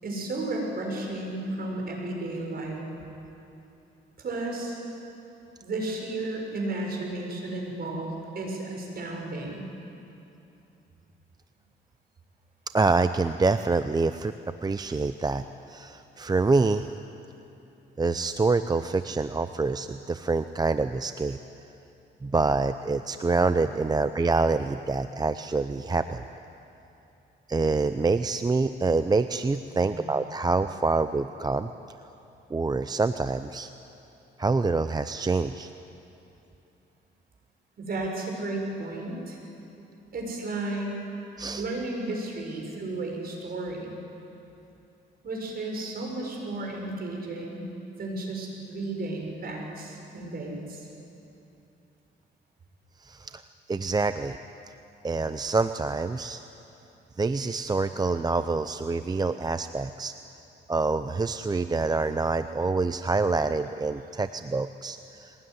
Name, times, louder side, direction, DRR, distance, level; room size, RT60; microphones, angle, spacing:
voice 1, 0.0-2.9 4.2-4.8 5.6-9.7 29.7-30.1 37.8-39.4 40.1-41.0 41.6-43.9 45.2-47.7 48.0-50.9, right 2 dB, 50° right, 0 dB, 6.7 m, -33 dB
voice 2, 12.7-14.3 14.6-16.9 18.0-21.4 22.2-26.2 27.5-31.7 32.5-33.7 34.4-35.7 41.4-41.6 53.0-53.4 53.7-54.4 55.0-56.4 57.2-60.1 60.7-65.3, right 3 dB, 20° right, 10 dB, 0.6 m, -26 dB
22.5 x 19.0 x 9.6 m, 2.9 s
cardioid pair, 90°, 20 cm